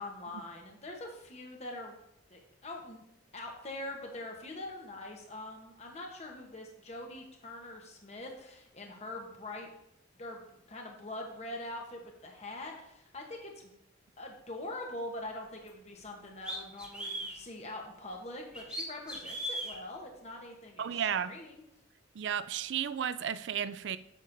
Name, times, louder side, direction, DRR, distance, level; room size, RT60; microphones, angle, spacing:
voice 1, 0.0-2.0 2.3-3.0 3.3-9.7 10.2-13.7 14.2-21.6, left 1 dB, 35° left, 1 dB, 1.0 m, -43 dB
sound 1, 15.7-15.8 16.4-17.4 18.5-19.7, right 1 dB, 5° right, 1.3 m, -37 dB
voice 2, 20.8-21.3 22.1-24.0, right 8 dB, 60° right, 14 dB, 0.4 m, -33 dB
9.0 x 7.4 x 2.6 m, 0.79 s
head